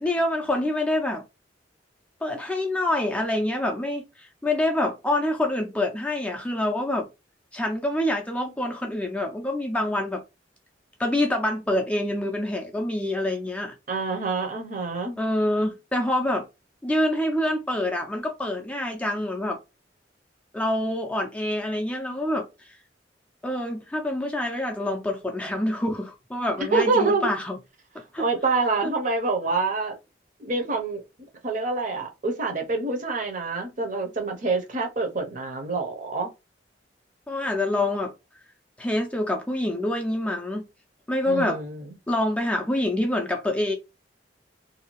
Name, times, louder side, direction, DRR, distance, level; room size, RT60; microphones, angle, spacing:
voice 1, 0.0-1.2 2.2-7.1 7.5-10.2 11.0-13.7 15.2-16.5 16.8-19.6 20.5-22.7 23.4-27.6 28.0-28.3 28.8-28.9 37.3-38.1 38.8-40.7 41.1-41.6 42.1-43.7, left 1 dB, 5° left, 0.4 m, -26 dB
voice 2, 13.9-15.2 26.6-27.3 28.2-29.9 30.4-31.0 31.4-36.3 41.3-41.9, right 3 dB, 45° right, 0.7 m, -26 dB
2.6 x 2.3 x 3.0 m
head